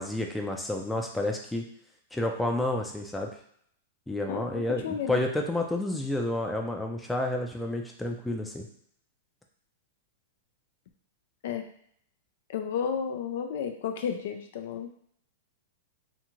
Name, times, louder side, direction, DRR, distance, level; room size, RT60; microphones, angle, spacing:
voice 1, 0.0-1.6 2.1-3.3 4.1-8.7, left 1 dB, 5° left, 1 dB, 0.4 m, -30 dB
voice 2, 4.3-5.2 11.4-11.7 12.5-14.9, left 7 dB, 65° left, 5 dB, 0.4 m, -32 dB
2.4 x 2.4 x 3.0 m, 0.65 s
hypercardioid pair, 120°, 0 cm